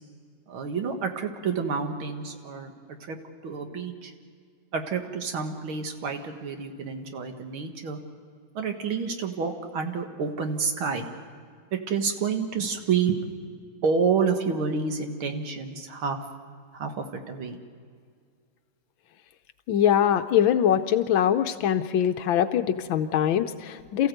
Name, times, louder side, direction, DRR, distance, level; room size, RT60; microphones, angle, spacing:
voice 1, 0.5-2.7 3.0-3.2 3.4-4.1 4.7-8.0 8.5-11.1 11.9-13.2 13.8-16.2 16.7-17.6, right 5 dB, 70° right, 5 dB, 2.4 m, -29 dB
voice 2, 19.7-24.1, left 9 dB, 70° left, 9 dB, 1.4 m, -23 dB
28.0 x 15.0 x 7.9 m, 2.1 s
omnidirectional pair, 2.4 m